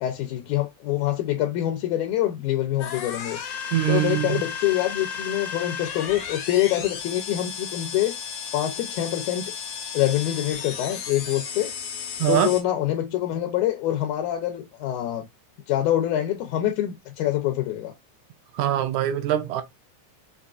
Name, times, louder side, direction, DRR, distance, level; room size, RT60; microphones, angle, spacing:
voice 1, 0.0-3.4 3.9-8.2 8.5-9.5 9.9-11.7 12.3-15.3 15.7-17.9, left 13 dB, 90° left, 2.1 m, -25 dB
sound 1, 2.8-12.6, left 7 dB, 65° left, 1.5 m, -34 dB
voice 2, 3.7-4.4 12.2-12.5 18.6-19.6, right 11 dB, 80° right, 1.9 m, -23 dB
5.3 x 2.3 x 2.4 m
omnidirectional pair, 3.5 m